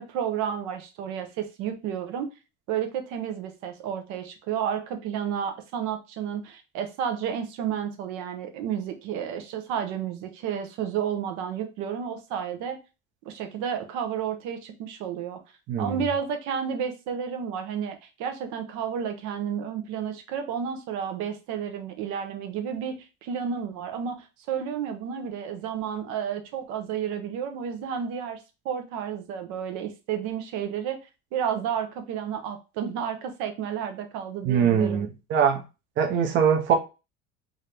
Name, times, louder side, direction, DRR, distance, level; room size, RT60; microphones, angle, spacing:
voice 1, 0.0-2.3 2.7-12.8 13.2-15.4 15.8-28.4 28.6-31.0 31.3-35.1, right 8 dB, 75° right, 7 dB, 0.9 m, -31 dB
voice 2, 15.7-16.0 34.4-35.6 36.0-36.8, right 7 dB, 40° right, 4 dB, 0.7 m, -22 dB
3.7 x 2.8 x 3.3 m, 0.29 s
cardioid pair, 165°, 30 cm